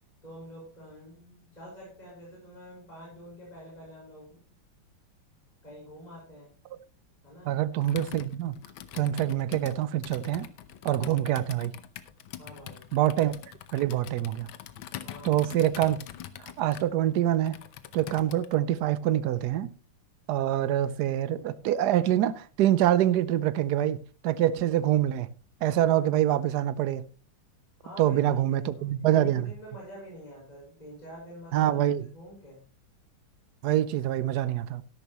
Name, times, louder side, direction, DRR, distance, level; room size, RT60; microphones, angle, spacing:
voice 1, 0.2-4.5 5.6-6.5 7.2-7.5 12.3-12.8 15.0-15.4 27.8-31.8 32.1-32.6, equal, 15° left, 5.5 m, -47 dB
voice 2, 7.5-8.5 8.9-10.5 10.8-11.8 12.9-13.3 13.7-14.5 15.2-16.0 16.4-17.6 17.9-19.7 20.3-25.3 25.6-27.1 28.0-29.5 31.5-32.1 33.6-34.8, right 12 dB, 75° right, 0.9 m, -25 dB
Computer keyboard, 7.8-18.6, left 11 dB, 70° left, 1.5 m, -44 dB
12.5 x 12.0 x 3.0 m
omnidirectional pair, 2.4 m